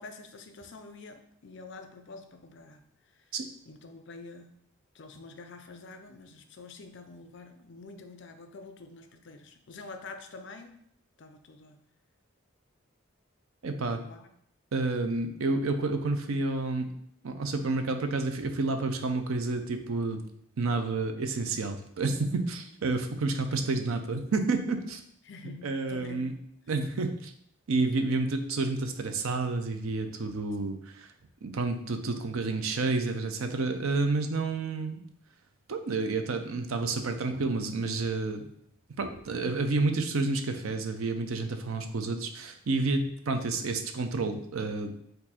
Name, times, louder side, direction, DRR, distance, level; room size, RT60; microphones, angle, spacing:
voice 1, 0.0-2.8 3.7-4.5 4.9-10.8 11.2-11.8 13.8-14.3 25.2-26.3 30.6-30.8, left 3 dB, 60° left, 7 dB, 0.5 m, -47 dB
voice 2, 13.6-14.0 14.7-16.9 17.2-20.2 20.6-25.0 25.6-26.3 26.7-27.3 27.7-31.1 31.4-35.0 35.7-38.5 39.0-44.9, right 3 dB, 85° right, 7 dB, 0.5 m, -30 dB
4.4 x 2.6 x 4.1 m, 0.68 s
head